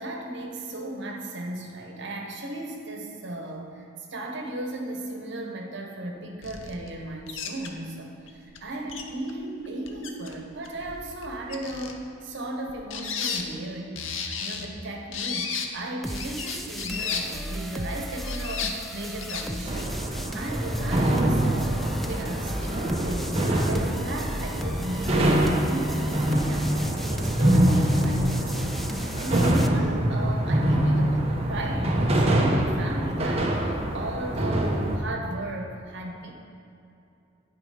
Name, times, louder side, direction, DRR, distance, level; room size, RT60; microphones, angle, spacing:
voice 1, 0.0-14.0 14.4-19.9 20.3-36.3, right 1 dB, 65° right, 2 dB, 1.1 m, -36 dB
sound 1, 6.4-6.9 7.3-7.7 8.3-8.4 8.6-8.7 8.9-9.3 9.7-10.4 10.6-11.9 12.7-13.4 14.0-14.7 15.1-15.7 16.2-17.2 18.1-18.7 19.2-19.4 19.7-19.9, left 6 dB, 70° left, 0.7 m, -33 dB
sound 2, 16.0-29.7, equal, ahead, 0.4 m, -36 dB
sound 3, 19.7-35.0, right 1 dB, 30° right, 0.8 m, -24 dB
9.6 x 5.0 x 5.1 m, 2.7 s
head